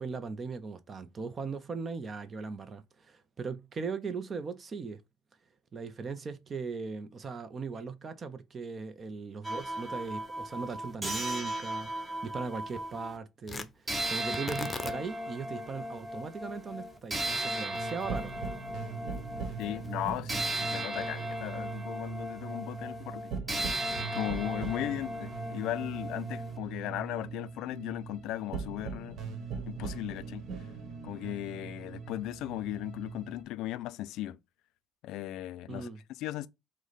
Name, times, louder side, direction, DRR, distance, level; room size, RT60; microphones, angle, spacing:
voice 1, 0.0-5.0 5.7-18.4 35.7-36.0, right 4 dB, 40° right, 0.5 m, -39 dB
sound 1, 9.4-13.2 13.9-26.6, right 1 dB, 15° right, 0.9 m, -37 dB
Tearing, 13.4-21.8, left 3 dB, 25° left, 0.6 m, -46 dB
sound 2, 17.7-33.4, right 5 dB, 65° right, 1.1 m, -40 dB
voice 2, 19.6-23.3 24.1-29.2 29.7-30.4 31.0-34.4 35.0-35.9 36.2-36.5, left 14 dB, 80° left, 0.3 m, -37 dB
4.6 x 2.1 x 3.9 m
supercardioid pair, 80°, 0 cm